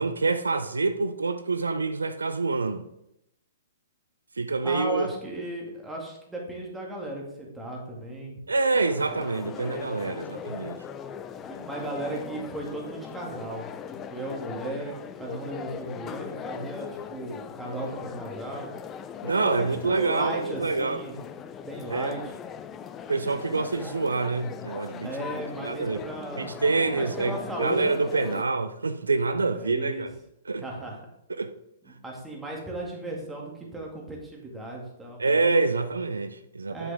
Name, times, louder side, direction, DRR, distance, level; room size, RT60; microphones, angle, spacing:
voice 1, 0.0-2.8 4.4-5.1 8.5-10.8 19.2-21.0 21.9-22.1 23.1-25.1 25.6-26.0 26.4-30.1 30.5-30.6 31.4-31.5 35.2-36.9, right 3 dB, 85° right, 0.4 m, -26 dB
voice 2, 4.6-8.4 11.4-18.7 19.2-21.2 21.6-22.3 25.0-26.7 26.9-27.9 29.5-30.1 30.6-31.0 31.8-35.2 36.7-36.9, right 1 dB, 10° right, 2.2 m, -36 dB
sound 1, 8.7-28.4, left 8 dB, 25° left, 0.4 m, -40 dB
7.9 x 6.2 x 3.5 m
figure-of-eight pair, 115°, 0 cm